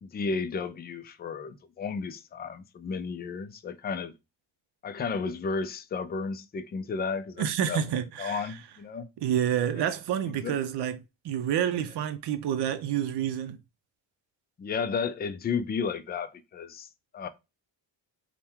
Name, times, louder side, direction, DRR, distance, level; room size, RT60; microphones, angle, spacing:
voice 1, 0.0-4.1 4.8-7.8 8.2-9.1 9.8-9.9 10.4-10.6 14.6-16.9 17.1-17.3, left 5 dB, 25° left, 0.3 m, -33 dB
voice 2, 7.4-8.6 9.2-11.0 11.2-13.6, right 9 dB, 65° right, 0.6 m, -28 dB
3.4 x 2.2 x 4.3 m
cardioid pair, 105°, 44 cm